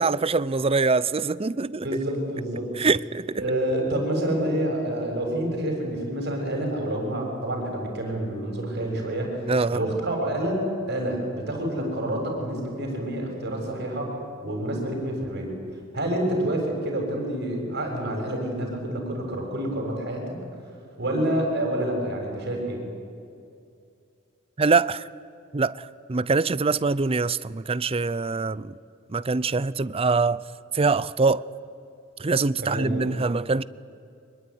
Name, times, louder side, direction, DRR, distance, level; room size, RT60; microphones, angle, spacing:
voice 1, 0.0-1.8 2.8-3.4 9.5-9.8 24.6-25.1 25.5-25.8 26.1-28.7 29.1-30.4 30.7-31.4 32.2-33.6, right 4 dB, 30° right, 0.5 m, -23 dB
voice 2, 1.8-2.9 3.4-15.6 15.9-20.4 21.0-22.9 32.6-33.0, right 1 dB, 55° right, 7.1 m, -28 dB
24.5 x 21.5 x 9.8 m
head